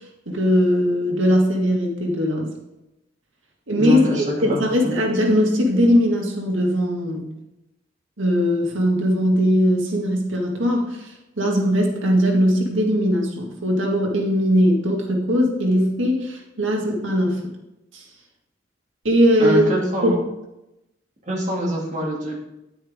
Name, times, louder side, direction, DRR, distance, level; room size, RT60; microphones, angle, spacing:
voice 1, 0.3-2.5 3.7-7.3 8.2-17.4 17.9-18.0 19.0-19.6 20.0-20.2, equal, 85° right, 0 dB, 1.9 m, -20 dB
voice 2, 3.8-4.9 19.4-20.1 21.3-22.4, equal, 40° right, -2 dB, 2.5 m, -24 dB
10.0 x 9.2 x 3.6 m, 0.94 s
head